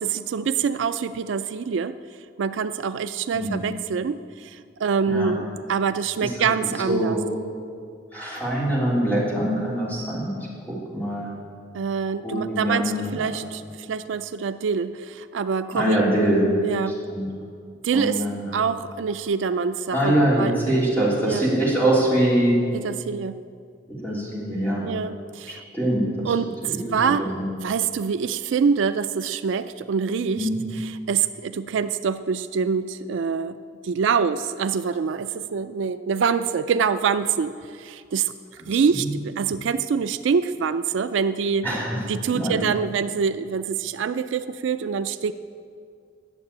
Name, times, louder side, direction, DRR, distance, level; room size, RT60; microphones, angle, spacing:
voice 1, 0.0-1.9 2.4-7.2 11.7-16.0 16.6-17.0 17.8-18.2 18.5-20.8 21.3-21.5 22.8-23.4 24.8-25.6 26.2-27.2 27.6-30.5 30.8-33.6 33.8-38.3 38.7-41.7 42.1-45.3, right 6 dB, 70° right, 12 dB, 0.4 m, -25 dB
voice 2, 6.8-7.3 8.1-10.3 10.7-11.3 12.2-13.4 15.7-16.4 16.8-17.3 17.9-18.5 19.9-22.6 24.0-24.8 25.7-26.3 26.6-27.4 30.3-30.6 38.9-39.1 41.6-42.0 42.3-42.7, right 1 dB, 10° left, -7 dB, 3.5 m, -23 dB
11.5 x 7.4 x 8.7 m, 2.2 s
head